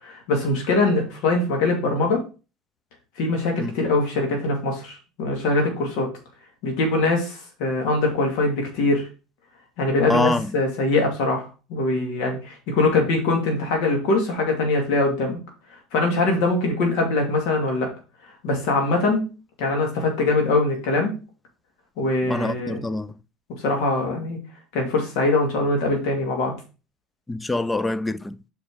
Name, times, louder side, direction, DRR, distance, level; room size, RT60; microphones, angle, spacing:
voice 1, 0.0-2.2 3.2-6.1 6.6-9.1 9.8-15.4 15.9-17.9 18.4-19.2 19.6-21.1 22.0-22.8 23.6-24.4 24.7-26.5, left 2 dB, 70° left, 2.6 m, -22 dB
voice 2, 10.1-10.5 22.2-23.1 27.3-28.4, left 2 dB, 10° left, 0.4 m, -25 dB
5.0 x 4.9 x 5.2 m
supercardioid pair, 115°, 0 cm